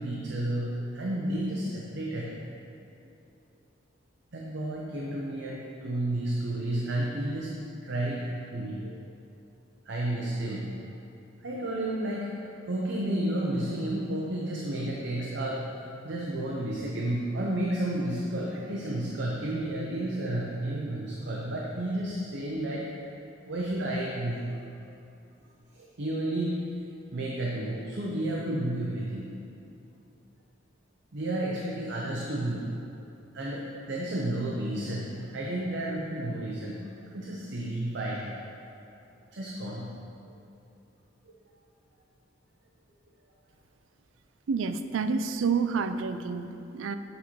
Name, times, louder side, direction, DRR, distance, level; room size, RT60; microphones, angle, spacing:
voice 1, 0.0-2.4 4.3-7.5 7.8-9.0 9.8-10.9 11.4-12.4 12.7-22.9 23.4-24.5 25.7-26.6 27.1-29.3 31.1-32.6 33.3-36.8 37.1-38.3 39.3-39.9 40.2-40.3 41.2-41.3, right 1 dB, 65° right, -3 dB, 0.8 m, -31 dB
voice 2, 44.5-47.0, right 5 dB, 80° right, 10 dB, 0.4 m, -29 dB
8.3 x 4.3 x 4.6 m, 2.6 s
head